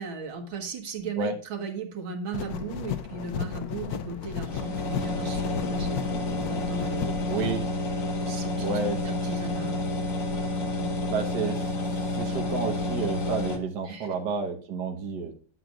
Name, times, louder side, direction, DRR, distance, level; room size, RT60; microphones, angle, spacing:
voice 1, 0.0-7.4 8.3-8.7 9.1-9.9 10.7-11.0 13.9-14.1, right 4 dB, 85° right, 3 dB, 2.2 m, -37 dB
sound 1, 2.3-7.6, left 8 dB, 65° left, 1.0 m, -34 dB
sound 2, 4.5-13.6, left 2 dB, 50° left, 1.3 m, -29 dB
voice 2, 7.3-7.6 8.6-9.0 11.1-15.3, right 4 dB, 60° right, 3 dB, 1.6 m, -31 dB
10.5 x 7.6 x 2.4 m, 0.43 s
omnidirectional pair, 2.1 m